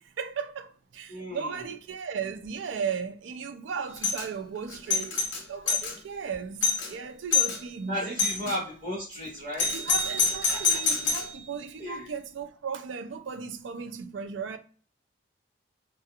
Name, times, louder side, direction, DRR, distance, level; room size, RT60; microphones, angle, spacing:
voice 1, 0.0-5.1 5.5-8.5 9.7-14.6, right 6 dB, 75° right, 0.4 m, -36 dB
voice 2, 1.1-1.7 7.9-9.7 10.5-10.8 11.8-12.1, equal, 40° right, 0.8 m, -35 dB
Doorbell, 4.0-4.3 4.7-5.9 6.3-6.4 6.6-6.9 7.3-7.6 8.2-8.6 9.6-11.3, left 5 dB, 75° left, 0.8 m, -26 dB
2.3 x 2.3 x 2.8 m
head